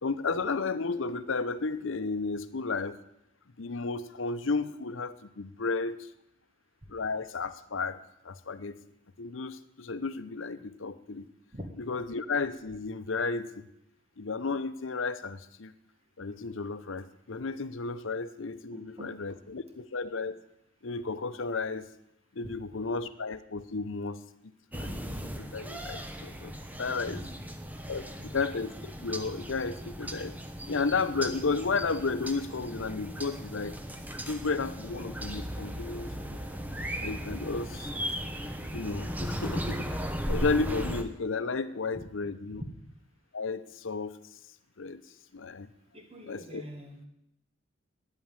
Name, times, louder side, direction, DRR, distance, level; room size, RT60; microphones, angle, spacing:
voice 1, 0.0-3.0 3.6-6.1 6.9-8.0 8.2-8.8 9.2-11.3 11.8-13.7 14.2-15.7 16.2-20.4 20.8-21.9 22.4-24.2 24.8-24.9 25.4-26.5 26.8-27.2 27.9-30.4 30.7-33.8 34.3-36.4 37.0-37.9 38.7-39.9 40.3-42.6 43.3-44.1 44.8-45.0 45.3-45.7 46.3-46.6, left 4 dB, 75° left, 12 dB, 0.8 m, -33 dB
voice 2, 18.7-19.4 27.1-27.5 28.2-28.3 41.9-42.0 45.9-47.0, equal, 30° right, 3 dB, 1.6 m, -44 dB
sound 1, 24.7-41.0, equal, 10° right, 1.0 m, -37 dB
10.0 x 9.0 x 9.1 m, 0.79 s
head